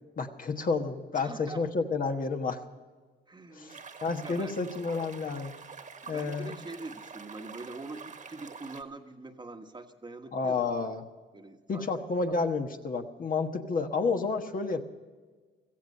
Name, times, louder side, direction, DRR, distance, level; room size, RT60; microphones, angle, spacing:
voice 1, 0.2-2.6 3.5-5.5 6.1-6.6 10.3-11.1 11.7-14.9, left 4 dB, 45° left, 5 dB, 1.3 m, -30 dB
voice 2, 1.1-1.6 3.3-3.8 4.2-4.5 6.0-10.7 11.3-11.9, right 3 dB, 20° right, 6 dB, 1.3 m, -44 dB
sound 1, 3.7-8.8, right 5 dB, 40° right, 1.5 m, -46 dB
16.5 x 14.5 x 5.4 m, 1.4 s
cardioid pair, 90°, 20 cm